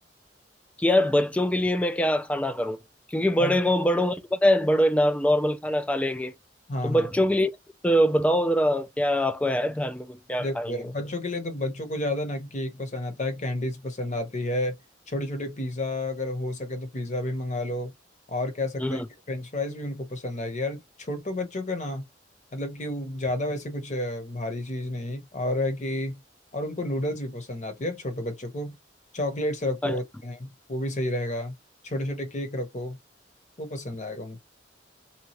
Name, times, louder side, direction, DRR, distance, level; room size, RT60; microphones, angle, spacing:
voice 1, 0.8-2.8 3.1-6.3 6.8-7.5 7.8-10.8 18.8-19.1 29.8-30.0, equal, 5° left, 0.3 m, -23 dB
voice 2, 6.7-7.1 10.4-14.8 15.1-17.9 18.3-19.0 19.3-22.1 22.5-26.2 26.5-28.8 29.1-31.6 31.8-33.0 33.6-34.4, left 1 dB, 40° left, 0.9 m, -31 dB
2.8 x 2.3 x 2.9 m
head